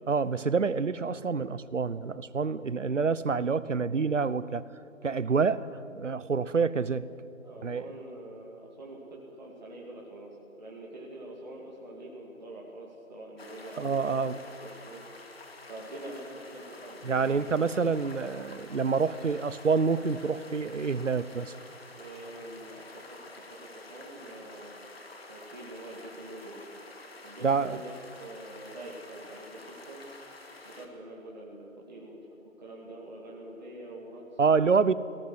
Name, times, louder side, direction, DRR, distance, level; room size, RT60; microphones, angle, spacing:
voice 1, 0.1-4.7 5.0-5.7 5.9-7.1 7.6-7.9 13.8-14.4 17.0-21.5 27.4-27.8 34.4-34.9, right 5 dB, 60° right, 17 dB, 0.9 m, -27 dB
voice 2, 7.4-14.2 14.5-15.0 15.7-16.3 16.5-17.6 22.0-23.1 23.4-24.7 25.3-26.6 27.2-27.9 28.2-30.0 30.6-32.2 32.6-34.6, right 1 dB, 30° right, -4 dB, 2.6 m, -45 dB
sound 1, 13.4-30.9, left 2 dB, 45° left, 2.1 m, -49 dB
20.0 x 17.5 x 7.9 m, 2.9 s
figure-of-eight pair, 170°, 42 cm